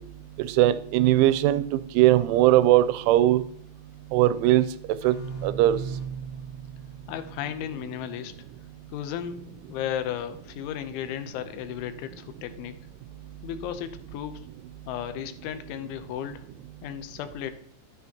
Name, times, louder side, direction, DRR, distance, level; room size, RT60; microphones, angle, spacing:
voice 1, 0.4-3.4 4.1-4.6 5.0-5.2 5.4-5.8, right 14 dB, 85° right, 13 dB, 3.0 m, -20 dB
sound 1, 5.0-8.5, right 5 dB, 65° left, 4.1 m, -39 dB
voice 2, 7.1-8.3 8.9-12.8 13.4-14.5 14.9-16.5 16.8-17.5, left 10 dB, 85° left, 10 dB, 3.1 m, -34 dB
12.5 x 9.7 x 2.8 m, 0.63 s
omnidirectional pair, 5.4 m